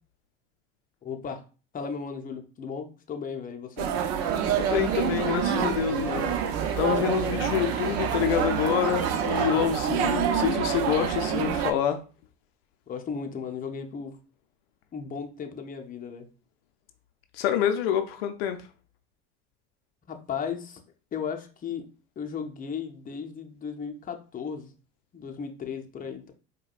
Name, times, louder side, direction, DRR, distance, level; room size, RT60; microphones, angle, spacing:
voice 1, 1.0-1.4 1.7-3.9 12.9-14.2 14.9-16.3 20.1-20.8 21.1-21.9 22.2-24.7 25.1-26.3, left 6 dB, 30° left, 0.7 m, -35 dB
sound 1, 3.8-11.7, right 8 dB, 65° right, 0.6 m, -27 dB
sound 2, 4.2-9.7, right 1 dB, 15° right, 1.4 m, -40 dB
voice 2, 4.6-6.3 6.8-12.0 17.3-18.6, left 9 dB, 85° left, 0.5 m, -27 dB
4.6 x 2.2 x 2.4 m
hypercardioid pair, 80°, 29 cm